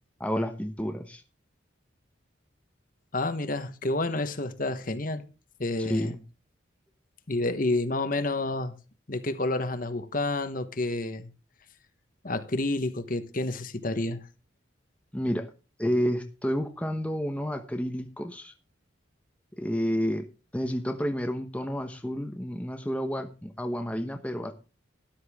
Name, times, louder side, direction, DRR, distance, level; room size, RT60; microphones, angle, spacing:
voice 1, 0.2-1.2 5.8-6.2 15.1-15.5 15.8-18.5 19.6-20.3 20.5-24.5, equal, 5° left, 1.0 m, -30 dB
voice 2, 3.1-5.2 5.6-6.1 7.3-8.8 9.1-11.3 12.2-14.2, left 2 dB, 40° left, 1.2 m, -29 dB
13.0 x 12.0 x 3.6 m
head